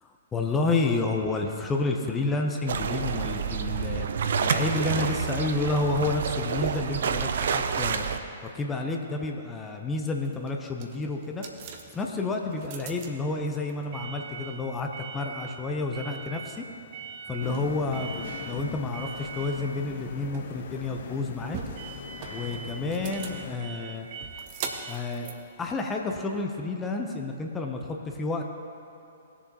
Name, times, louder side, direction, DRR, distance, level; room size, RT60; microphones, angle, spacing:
voice 1, 0.0-4.1 4.4-8.1 8.5-11.4 11.9-16.6 17.3-21.6 22.3-24.1 24.9-28.4, left 3 dB, 15° left, 2 dB, 0.8 m, -30 dB
sound 1, 2.7-8.2, right 6 dB, 60° right, 0.5 m, -28 dB
sound 2, 10.0-26.4, right 6 dB, 40° right, 1.0 m, -42 dB
sound 3, 17.4-23.6, left 6 dB, 55° left, 0.8 m, -40 dB
19.0 x 6.9 x 3.0 m, 2.8 s
figure-of-eight pair, 115°, 0 cm